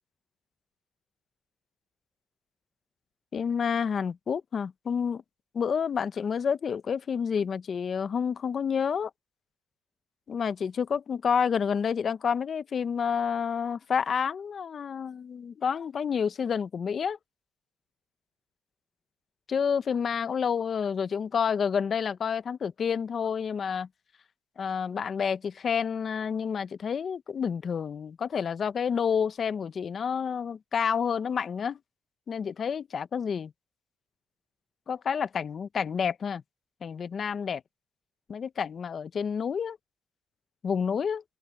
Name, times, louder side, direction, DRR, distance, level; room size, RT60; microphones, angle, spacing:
voice 1, 3.3-5.2 5.5-9.1 10.3-17.2 19.5-23.9 24.6-31.8 32.3-33.5 34.9-36.4 36.8-37.6 38.3-39.8 40.6-41.2, left 7 dB, 50° left, 0.9 m, -29 dB
open air
cardioid pair, 90°, 0 cm